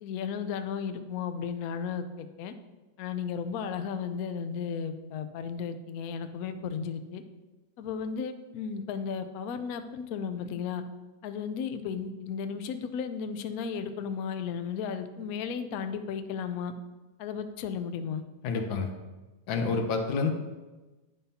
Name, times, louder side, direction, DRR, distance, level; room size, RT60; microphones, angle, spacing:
voice 1, 0.0-2.5 3.0-7.2 7.8-10.8 11.2-16.7 17.2-18.2, left 6 dB, 75° left, 9 dB, 0.8 m, -34 dB
voice 2, 18.4-18.9 19.5-20.3, left 4 dB, 90° left, 4 dB, 1.6 m, -28 dB
10.0 x 5.4 x 2.8 m, 1.2 s
omnidirectional pair, 2.0 m